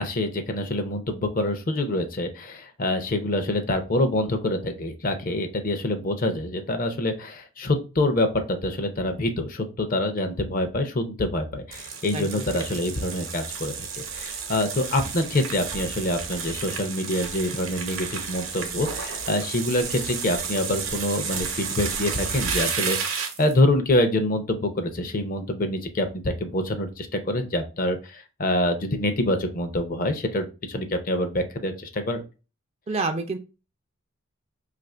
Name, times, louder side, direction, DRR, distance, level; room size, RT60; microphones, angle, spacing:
voice 1, 0.0-32.2, left 1 dB, 40° left, 7 dB, 0.5 m, -26 dB
sound 1, 11.7-23.6, right 6 dB, 75° right, 0.8 m, -32 dB
voice 2, 12.1-12.4 32.9-33.4, right 3 dB, 30° right, 7 dB, 0.3 m, -28 dB
2.8 x 2.5 x 4.2 m, 0.32 s
head